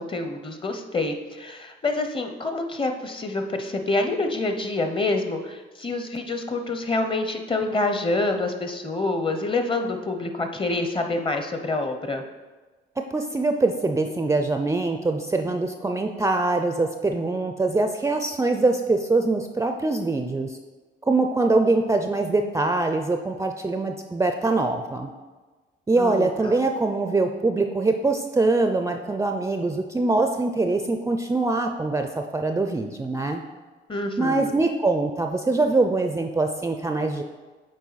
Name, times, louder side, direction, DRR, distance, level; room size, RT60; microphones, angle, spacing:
voice 1, 0.0-12.2 26.0-26.6 33.9-34.5, left 2 dB, 25° left, 6 dB, 0.7 m, -27 dB
voice 2, 13.0-20.6 21.0-25.1 25.9-33.4 34.2-37.2, right 3 dB, 15° right, 5 dB, 0.4 m, -23 dB
7.4 x 4.5 x 4.0 m, 1.3 s
cardioid pair, 90°, 20 cm